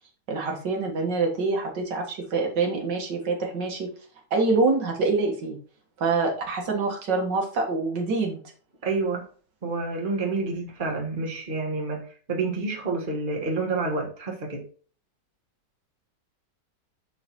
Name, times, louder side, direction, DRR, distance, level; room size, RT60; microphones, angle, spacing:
voice 1, 0.3-3.9 4.3-5.6 6.0-8.4, right 3 dB, 85° right, 2 dB, 2.2 m, -25 dB
voice 2, 8.8-9.3 9.6-14.6, right 3 dB, 30° right, 1 dB, 1.5 m, -28 dB
10.5 x 4.0 x 3.0 m, 0.42 s
omnidirectional pair, 1.9 m